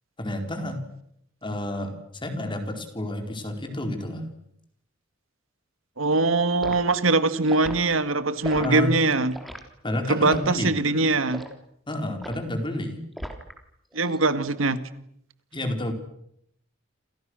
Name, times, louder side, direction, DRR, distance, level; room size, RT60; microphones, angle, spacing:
voice 1, 0.2-0.8 1.4-2.0 2.2-4.3 8.5-8.9 9.8-11.1 11.9-13.0 15.5-15.9, left 1 dB, 25° left, 6 dB, 4.7 m, -30 dB
voice 2, 6.0-9.4 10.1-11.4 13.9-14.8, right 3 dB, 85° right, 12 dB, 2.0 m, -22 dB
Liquid, 6.6-6.8 7.4-7.8 8.4-8.7 9.3-9.6 10.3-10.5 11.3-11.5 12.2-12.5 13.2-13.6 13.9-14.2, equal, ahead, 3.5 m, -37 dB
29.5 x 28.0 x 6.5 m, 0.72 s
head